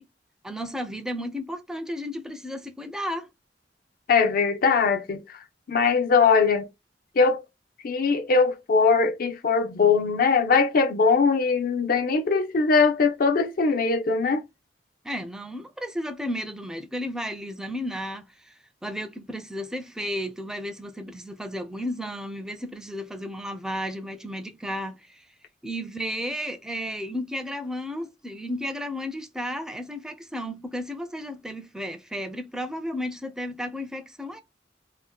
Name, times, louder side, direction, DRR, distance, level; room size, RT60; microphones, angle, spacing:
voice 1, 0.4-3.3 15.0-18.5 18.8-25.2 25.6-34.4, equal, 5° right, 0.4 m, -33 dB
voice 2, 4.1-6.7 7.2-7.4 7.8-14.4, left 4 dB, 55° left, 0.5 m, -21 dB
2.8 x 2.0 x 3.4 m
head